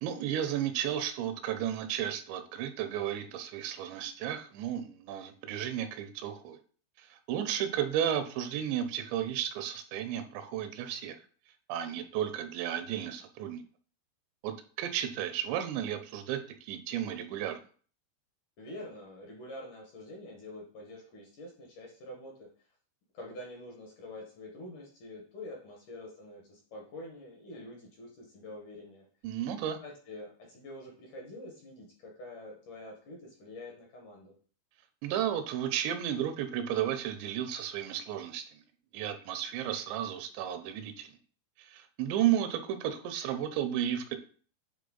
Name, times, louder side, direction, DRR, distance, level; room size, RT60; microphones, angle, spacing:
voice 1, 0.0-6.6 7.0-11.2 11.7-13.6 14.4-17.6 29.2-29.8 35.0-38.6 38.9-41.1 41.6-44.2, right 10 dB, 90° right, 8 dB, 2.9 m, -33 dB
voice 2, 18.6-22.5 23.1-29.1 29.8-34.3, left 1 dB, 65° left, -1 dB, 2.2 m, -46 dB
8.5 x 3.3 x 3.9 m, 0.42 s
omnidirectional pair, 5.1 m